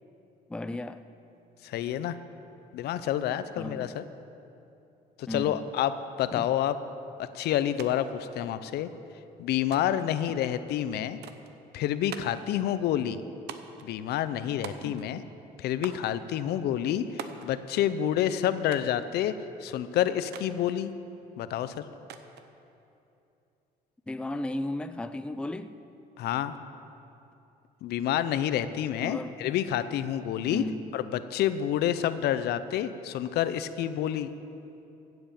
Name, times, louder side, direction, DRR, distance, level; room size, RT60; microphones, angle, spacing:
voice 1, 0.5-1.0 3.6-4.0 5.3-5.7 6.4-6.5 24.1-25.7 29.0-29.3 30.5-30.8, left 1 dB, 5° left, 11 dB, 0.4 m, -35 dB
voice 2, 1.6-2.2 2.7-4.0 5.2-6.8 7.2-8.9 9.4-11.2 11.7-13.2 13.8-15.2 15.6-19.3 19.6-20.9 21.4-21.8 26.2-26.5 27.8-30.6 30.9-34.3, left 11 dB, 75° left, 13 dB, 0.6 m, -28 dB
sound 1, 7.8-7.9 8.2-8.9 9.7-10.1 11.2-11.5 12.1-12.5 13.5-13.9 14.6-15.2 15.8-16.1 17.2-17.5 18.7-19.0 20.3-20.5 22.1-22.5, right 9 dB, 75° right, 0.8 m, -43 dB
15.5 x 8.0 x 7.1 m, 2.8 s
cardioid pair, 110°, 17 cm